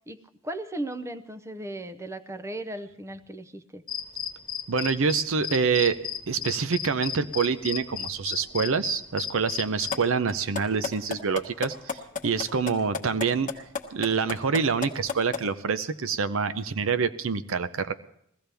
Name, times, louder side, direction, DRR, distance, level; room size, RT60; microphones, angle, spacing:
voice 1, 0.1-3.8, right 1 dB, 15° right, 11 dB, 0.6 m, -36 dB
sound 1, 3.9-10.0, left 8 dB, 25° left, 1.4 m, -35 dB
voice 2, 4.7-6.0 6.3-12.0 12.2-13.5 13.9-17.9, right 5 dB, 70° right, 12 dB, 0.6 m, -26 dB
sound 2, 9.9-10.0 10.3-15.4, left 5 dB, 40° left, 1.1 m, -31 dB
21.0 x 15.5 x 3.4 m, 0.76 s
head